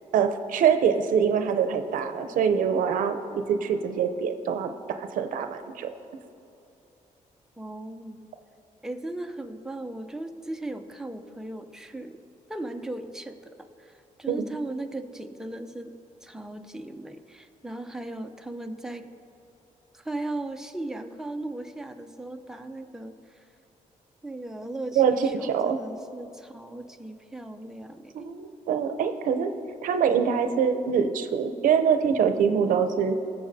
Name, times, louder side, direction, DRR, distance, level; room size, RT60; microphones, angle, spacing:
voice 1, 0.1-4.7 5.0-5.9 14.3-14.4 25.0-25.8 28.1-29.5 29.8-33.2, right 7 dB, 85° right, 8 dB, 0.6 m, -24 dB
voice 2, 7.6-8.3 8.8-12.2 12.5-15.9 16.2-19.1 19.9-23.5 24.2-28.3, right 2 dB, 5° right, 5 dB, 0.6 m, -37 dB
21.0 x 7.1 x 2.7 m, 2.8 s
cardioid pair, 115°, 13 cm